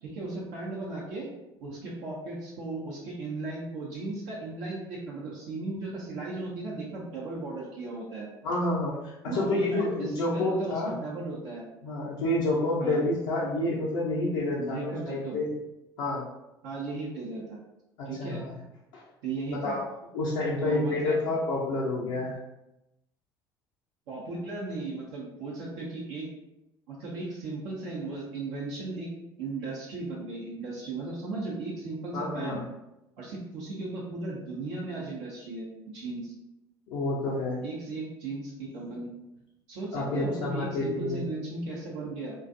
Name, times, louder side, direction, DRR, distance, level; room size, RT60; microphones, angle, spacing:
voice 1, 0.0-1.3 1.6-8.3 9.3-11.6 12.8-13.0 14.6-15.4 16.6-17.6 18.1-18.4 19.2-19.8 20.6-21.2 24.1-26.3 26.9-29.1 29.4-32.6 33.2-36.3 37.6-39.1 39.7-42.3, right 3 dB, 65° right, -5 dB, 0.6 m, -36 dB
voice 2, 8.4-11.0 11.8-15.5 16.0-16.2 18.0-18.5 18.9-19.0 19.5-19.9 20.1-22.4 32.1-32.6 36.9-37.6 39.9-41.3, left 2 dB, 70° left, -7 dB, 0.5 m, -29 dB
2.4 x 2.3 x 2.6 m, 0.91 s
hypercardioid pair, 60°, 12 cm